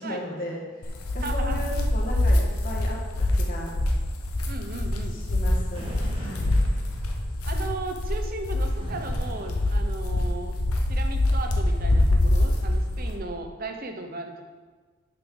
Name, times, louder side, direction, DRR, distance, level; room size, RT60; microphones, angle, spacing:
voice 1, 0.0-3.8 5.1-6.6, left 1 dB, 40° left, -2 dB, 1.4 m, -36 dB
sound 1, 0.8-13.2, left 1 dB, 85° left, 1.0 m, -25 dB
voice 2, 1.2-1.7 4.5-5.2 7.4-10.5 10.9-14.4, right 2 dB, 40° right, 5 dB, 0.8 m, -36 dB
sound 2, 5.7-7.6 8.8-10.6, right 1 dB, 25° right, 1.4 m, -41 dB
8.7 x 6.6 x 3.8 m, 1.3 s
head